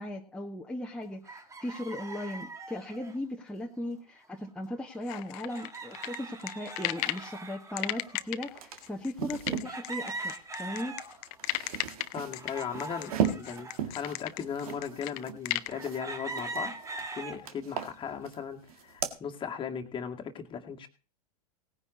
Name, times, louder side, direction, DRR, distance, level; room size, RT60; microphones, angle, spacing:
voice 1, 0.0-11.0, left 1 dB, 5° left, 0 dB, 1.6 m, -38 dB
sound 1, 1.2-3.2 4.3-4.5 4.8-4.9 5.5-8.3 8.9-9.0 9.6-11.4 11.8-13.8 14.4-14.5 15.7-17.4 17.9-18.4, right 3 dB, 15° right, 1.9 m, -41 dB
sound 2, 5.1-7.3 7.8-15.7, left 20 dB, 45° left, 0.9 m, -35 dB
sound 3, 8.0-8.1 8.4-9.7 11.1-16.0 16.3-17.1 17.4-18.4 18.7-19.1, right 8 dB, 65° right, 1.9 m, -36 dB
voice 2, 12.1-16.7 17.1-20.9, left 7 dB, 25° left, 4 dB, 2.1 m, -37 dB
18.5 x 9.8 x 4.1 m, 0.34 s
figure-of-eight pair, 95°, 20 cm